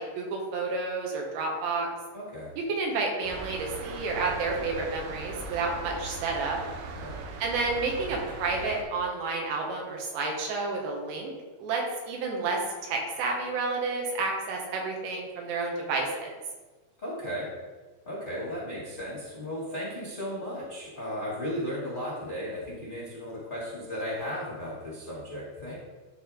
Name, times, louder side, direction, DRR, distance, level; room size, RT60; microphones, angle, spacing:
voice 1, 0.0-1.9 2.6-6.6 7.4-11.3 11.6-16.4, right 3 dB, 75° right, 0 dB, 3.2 m, -30 dB
voice 2, 2.1-2.5 6.9-7.2 17.0-17.5 18.0-25.8, equal, 85° left, -9 dB, 0.4 m, -35 dB
sound 1, 3.2-8.8, right 3 dB, 90° right, 2.2 m, -39 dB
12.5 x 4.3 x 3.6 m, 1.3 s
omnidirectional pair, 5.4 m